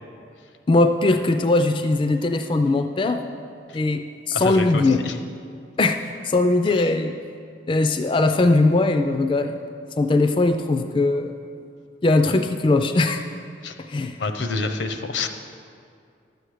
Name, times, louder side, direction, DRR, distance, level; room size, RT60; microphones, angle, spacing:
voice 1, 0.7-3.2 3.7-5.0 5.8-7.1 7.7-9.6 10.0-11.3 12.0-13.2 13.9-14.2, left 2 dB, 25° left, 7 dB, 0.3 m, -20 dB
voice 2, 4.3-5.2 6.7-6.9 13.6-13.7 14.2-15.3, left 3 dB, 80° left, 7 dB, 0.8 m, -28 dB
12.0 x 7.8 x 5.0 m, 2.4 s
head